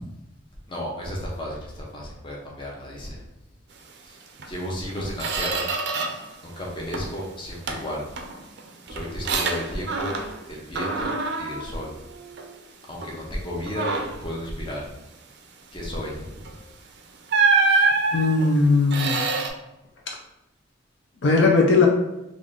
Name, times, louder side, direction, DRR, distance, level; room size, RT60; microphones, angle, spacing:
voice 1, 0.7-3.2 4.0-4.2 4.5-5.7 6.4-8.0 8.9-10.1 10.5-11.9 12.9-14.9 15.7-16.4 17.6-17.9, equal, 25° left, -3 dB, 0.7 m, -33 dB
Squeak, 4.4-4.5 4.9-6.3 6.6-7.2 7.7-10.5 10.7-12.6 13.0-13.2 13.7-14.3 16.4-16.6 17.3-19.5, right 3 dB, 55° right, 0.4 m, -26 dB
voice 2, 18.1-19.2 21.2-21.9, left 3 dB, 65° left, 0 dB, 0.5 m, -18 dB
3.4 x 2.5 x 3.7 m, 0.93 s
head